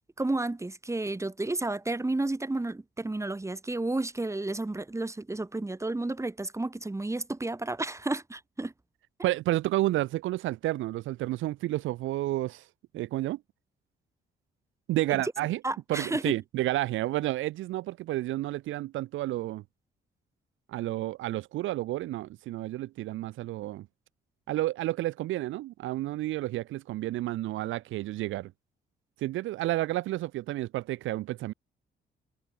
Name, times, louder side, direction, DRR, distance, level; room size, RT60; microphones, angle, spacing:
voice 1, 0.2-8.7 15.1-15.2 15.6-16.3, right 2 dB, 15° right, 3.3 m, -31 dB
voice 2, 9.2-12.7 12.9-13.4 14.9-15.6 15.9-19.6 20.7-23.9 24.5-28.5 29.2-31.5, right 16 dB, 80° right, 0.6 m, -30 dB
cardioid pair, 90°, 20 cm